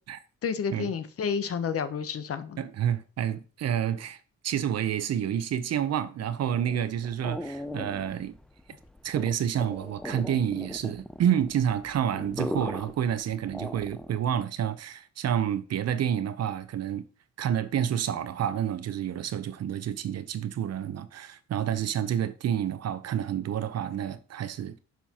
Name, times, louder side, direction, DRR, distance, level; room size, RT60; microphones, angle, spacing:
voice 1, 0.4-2.6, left 6 dB, 50° left, 0.8 m, -30 dB
voice 2, 2.6-4.2 4.4-8.4 9.0-17.1 17.4-24.8, right 9 dB, 55° right, 0.7 m, -29 dB
sound 1, 6.5-14.3, left 1 dB, 5° left, 0.4 m, -39 dB
7.0 x 5.8 x 2.9 m
cardioid pair, 90°, 30 cm